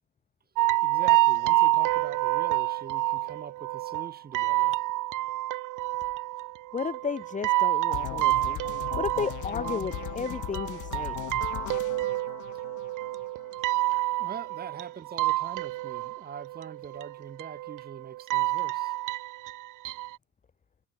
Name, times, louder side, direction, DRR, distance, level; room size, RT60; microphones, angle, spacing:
sound 1, 0.6-20.2, right 17 dB, 45° right, 1.5 m, -28 dB
voice 1, 0.8-4.8 14.2-18.9, right 7 dB, 20° right, 2.5 m, -43 dB
voice 2, 6.7-8.6 9.0-11.2, left 6 dB, 15° left, 1.8 m, -33 dB
sound 2, 7.9-13.9, left 18 dB, 45° left, 1.1 m, -38 dB
supercardioid pair, 125°, 42 cm